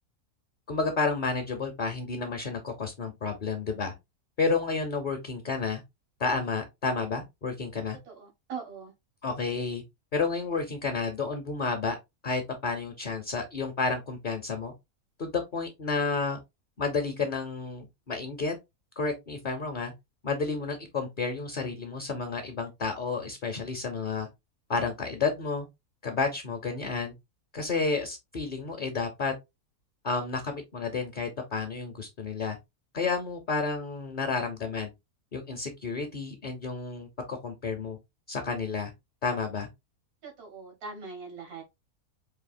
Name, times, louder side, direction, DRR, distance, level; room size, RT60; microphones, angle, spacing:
voice 1, 0.7-3.9 4.4-5.8 6.2-8.0 9.2-9.8 10.1-12.0 12.2-14.7 15.2-16.4 16.8-18.5 19.0-19.9 20.2-24.3 24.7-25.7 26.0-27.1 27.5-29.3 30.0-32.6 32.9-34.9 35.3-38.0 38.3-38.9 39.2-39.7, left 4 dB, 45° left, 0.6 m, -31 dB
voice 2, 8.1-8.9 40.2-41.6, right 5 dB, 90° right, 2.1 m, -41 dB
4.8 x 2.6 x 2.6 m
omnidirectional pair, 1.6 m